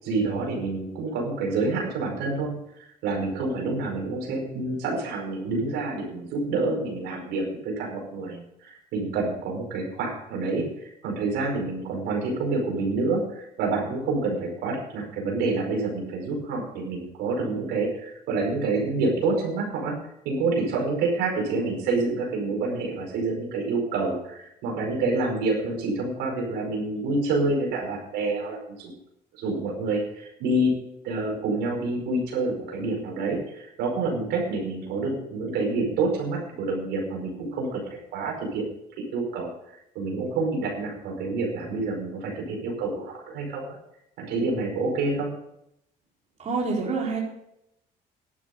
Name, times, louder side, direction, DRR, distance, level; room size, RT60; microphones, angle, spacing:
voice 1, 0.0-2.6 3.0-20.0 20.2-28.9 29.3-30.7 31.0-37.8 38.1-38.6 39.1-39.5 39.9-43.7 44.2-45.3, right 3 dB, 85° right, 0 dB, 5.1 m, -27 dB
voice 2, 46.4-47.2, right 4 dB, 40° right, -3 dB, 4.2 m, -27 dB
12.5 x 11.5 x 5.2 m, 0.78 s
cardioid pair, 110°, 17 cm